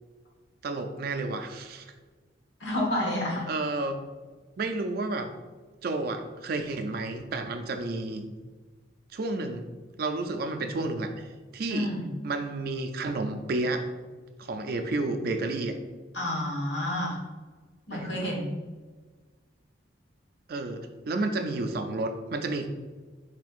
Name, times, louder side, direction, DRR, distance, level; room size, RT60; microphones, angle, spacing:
voice 1, 0.6-1.9 3.5-4.0 4.6-5.3 5.8-8.3 9.1-9.6 10.0-11.3 11.5-11.9 12.2-13.8 14.4-15.8 17.9-18.3 20.5-22.7, right 2 dB, 55° right, 7 dB, 0.4 m, -31 dB
voice 2, 2.6-3.5 11.7-12.1 16.1-17.2 17.9-18.5, left 1 dB, 70° left, -3 dB, 1.4 m, -29 dB
4.3 x 4.3 x 2.4 m, 1.4 s
head